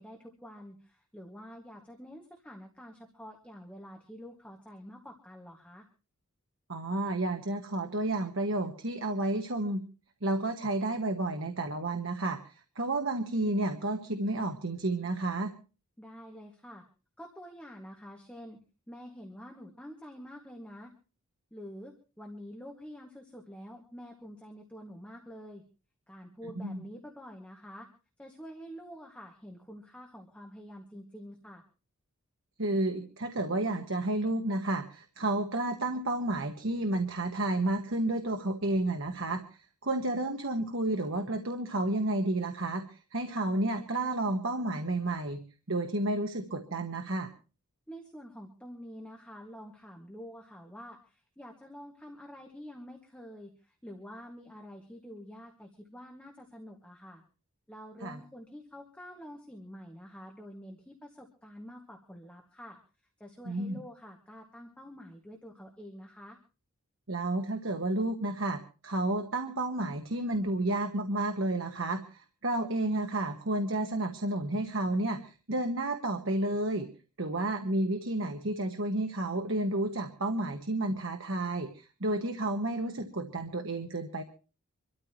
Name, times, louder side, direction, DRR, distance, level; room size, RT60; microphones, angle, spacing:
voice 1, 0.0-5.9 16.0-16.8 17.2-18.6 18.9-20.9 21.5-25.6 26.1-27.9 28.2-31.6 47.9-57.2 57.7-62.8 63.2-66.4, equal, 5° left, 0 dB, 1.9 m, -47 dB
voice 2, 6.7-9.8 10.2-15.5 26.6-26.8 32.6-45.4 45.7-47.3 58.0-58.2 63.4-63.8 67.1-76.9 77.2-84.2, right 2 dB, 60° right, 6 dB, 1.3 m, -31 dB
26.0 x 13.5 x 3.0 m, 0.34 s
head